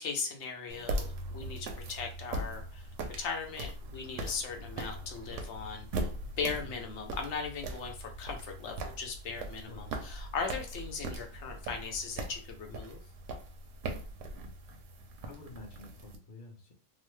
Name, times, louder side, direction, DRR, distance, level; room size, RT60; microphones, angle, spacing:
voice 1, 0.0-2.9 3.2-6.1 6.4-13.0, left 5 dB, 70° left, 3 dB, 0.9 m, -38 dB
sound 1, 0.7-16.2, right 2 dB, 85° right, 0.9 m, -40 dB
voice 2, 6.4-6.8 9.7-9.9 15.2-16.7, left 3 dB, 50° left, -1 dB, 0.8 m, -49 dB
3.0 x 2.0 x 3.1 m, 0.37 s
omnidirectional pair, 1.3 m